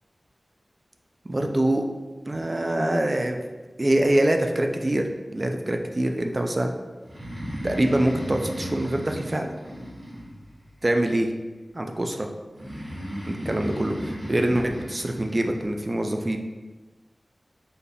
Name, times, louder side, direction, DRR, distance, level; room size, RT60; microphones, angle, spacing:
voice 1, 1.3-1.8 2.3-3.4 3.8-6.7 7.6-9.5 10.8-11.3 11.7-12.3 13.3-16.4, right 1 dB, 35° right, 3 dB, 0.3 m, -24 dB
Breathing, 7.0-10.7 12.5-15.6, equal, 80° right, 1.5 m, -35 dB
3.9 x 3.4 x 2.2 m, 1.2 s
wide cardioid pair, 85°, 0 cm